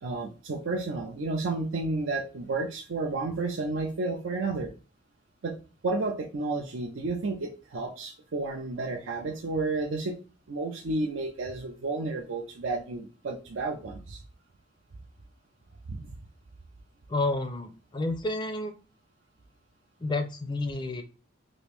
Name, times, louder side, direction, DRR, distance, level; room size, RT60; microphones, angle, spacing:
voice 1, 0.0-4.7 5.4-5.6 5.8-10.2 10.5-14.2 15.9-16.1, right 3 dB, 65° right, 1 dB, 0.5 m, -31 dB
voice 2, 17.1-18.7 20.0-21.0, left 2 dB, 20° left, 7 dB, 0.4 m, -30 dB
3.0 x 2.5 x 3.4 m, 0.34 s
head